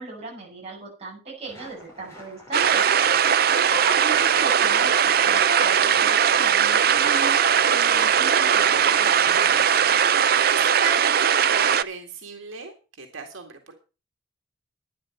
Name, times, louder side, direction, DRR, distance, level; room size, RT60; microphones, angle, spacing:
voice 1, 0.0-2.9 3.5-9.6, right 3 dB, 30° right, -3 dB, 7.9 m, -36 dB
sound 1, 1.4-11.1, equal, 15° left, 5.5 m, -46 dB
sound 2, 2.5-11.8, right 8 dB, 50° right, 0.5 m, -19 dB
voice 2, 10.0-13.7, right 4 dB, 85° right, 3 dB, 2.2 m, -36 dB
12.5 x 10.0 x 4.5 m, 0.32 s
head